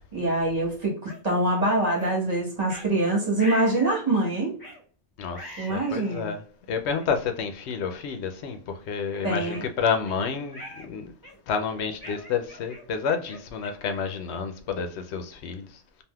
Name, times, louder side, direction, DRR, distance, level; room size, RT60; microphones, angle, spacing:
voice 1, 0.1-4.6 5.6-6.3 9.2-9.6, right 2 dB, 40° right, 1.2 m, -24 dB
sound 1, 1.1-1.2 2.0-2.1 2.7-2.9 3.4-4.0 4.6-4.8 5.3-6.2 7.0-7.1 7.8-8.0 8.4-8.6 9.1-10.2 10.5-10.9 11.2-11.6 12.0-14.6, left 1 dB, 25° left, 0.6 m, -43 dB
voice 2, 5.2-6.4 6.7-11.1 11.5-15.8, left 6 dB, 80° left, 0.9 m, -29 dB
3.4 x 2.5 x 2.2 m
omnidirectional pair, 1.1 m